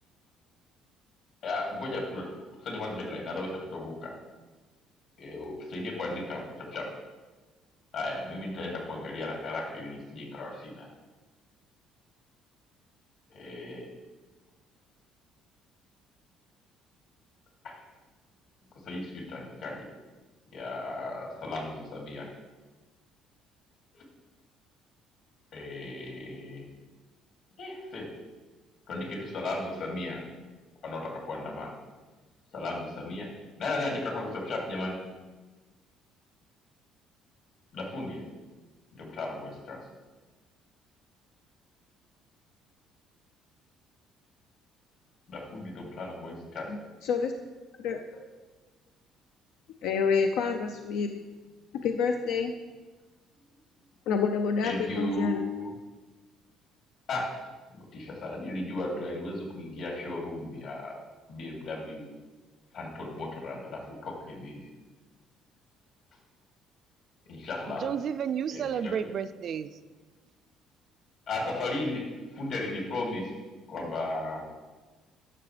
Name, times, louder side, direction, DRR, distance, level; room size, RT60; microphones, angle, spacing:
voice 1, 1.4-2.3 2.6-4.1 5.2-6.9 7.9-10.9 13.3-13.9 17.6-17.8 18.8-19.9 20.5-22.3 23.9-24.0 25.5-26.7 27.6-28.1 28.9-30.2 30.8-31.7 32.5-33.3 33.6-35.0 37.7-38.2 38.9-39.9 45.3-46.7 54.6-55.7 57.1-57.3 57.7-61.0 61.3-62.0 62.7-64.6 67.3-67.9 68.5-69.0 71.3-72.1 72.3-73.3 73.7-74.5, left 2 dB, 60° left, -1 dB, 2.7 m, -35 dB
voice 2, 46.7-47.3 47.8-48.0 49.8-51.2 51.8-52.5 54.1-55.5, left 5 dB, 80° left, 5 dB, 0.5 m, -28 dB
voice 3, 67.7-69.8, right 8 dB, 50° right, 12 dB, 0.4 m, -32 dB
12.0 x 7.0 x 3.3 m, 1.3 s
cardioid pair, 130°, 0 cm